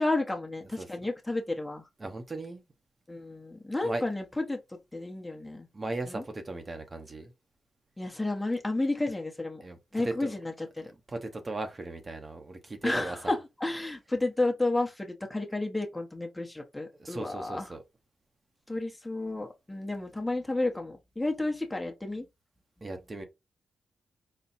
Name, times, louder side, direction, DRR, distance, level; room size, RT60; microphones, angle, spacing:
voice 1, 0.0-1.8 3.1-4.6 4.9-5.7 6.1-6.2 8.0-9.6 9.9-10.9 12.8-17.7 18.7-22.3, left 2 dB, 15° left, 1.1 m, -31 dB
voice 2, 2.0-2.6 3.8-4.0 5.7-7.3 9.6-10.3 11.1-13.2 17.0-17.8 22.8-23.2, right 2 dB, 35° right, 0.9 m, -37 dB
4.2 x 2.2 x 4.2 m
cardioid pair, 65°, 0 cm